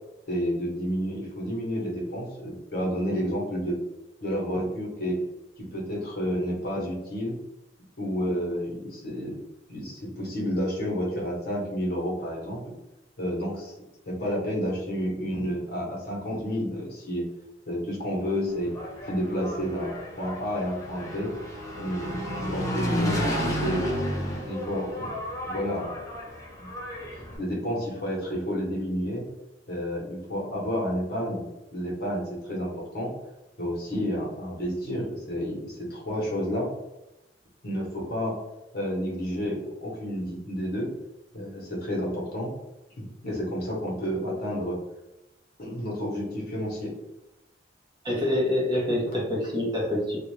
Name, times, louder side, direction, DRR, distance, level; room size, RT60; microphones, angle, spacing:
voice 1, 0.3-3.8 4.2-5.2 5.6-7.4 8.0-9.4 9.7-12.7 13.2-13.7 14.1-17.2 17.7-18.7 19.1-21.3 21.8-25.1 25.4-26.0 26.6-26.7 27.4-29.2 29.7-31.4 31.7-33.1 33.6-36.7 37.6-38.4 38.7-40.9 41.3-42.5 43.0-44.8 45.6-46.9, equal, 55° left, -2 dB, 0.9 m, -30 dB
Engine, 18.5-27.4, equal, 15° left, 0.5 m, -32 dB
voice 2, 48.0-50.2, left 1 dB, 25° right, -3 dB, 0.7 m, -26 dB
2.4 x 2.1 x 3.0 m, 0.95 s
head